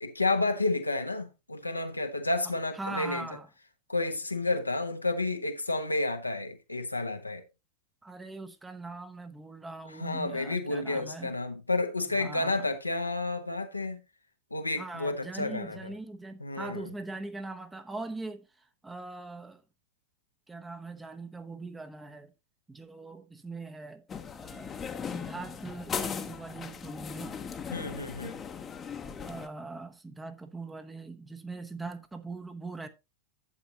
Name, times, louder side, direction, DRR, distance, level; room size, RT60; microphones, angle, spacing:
voice 1, 0.0-3.3 3.9-7.4 10.0-14.0 14.5-15.9 16.4-16.8 27.7-28.4, left 2 dB, 85° left, 1.2 m, -31 dB
voice 2, 2.7-3.5 8.0-11.4 12.1-12.7 14.8-19.6 20.5-22.3 22.7-24.0 24.3-27.4 29.2-32.9, right 3 dB, 10° right, 1.0 m, -41 dB
sound 1, 24.1-29.5, left 6 dB, 20° left, 1.1 m, -38 dB
11.0 x 8.2 x 2.8 m
figure-of-eight pair, 90°, 0 cm